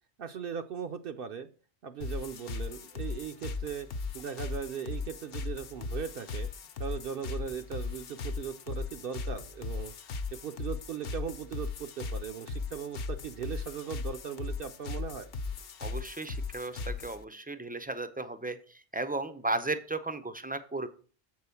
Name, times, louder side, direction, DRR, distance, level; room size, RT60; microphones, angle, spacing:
voice 1, 0.2-1.5 1.8-3.9 4.1-6.5 6.8-9.9 10.3-15.3, right 7 dB, 60° right, 8 dB, 0.7 m, -38 dB
sound 1, 2.0-17.2, left 4 dB, 60° left, 0.8 m, -38 dB
voice 2, 15.8-20.9, right 2 dB, 15° right, 11 dB, 0.3 m, -35 dB
7.5 x 4.7 x 6.9 m, 0.40 s
omnidirectional pair, 1.1 m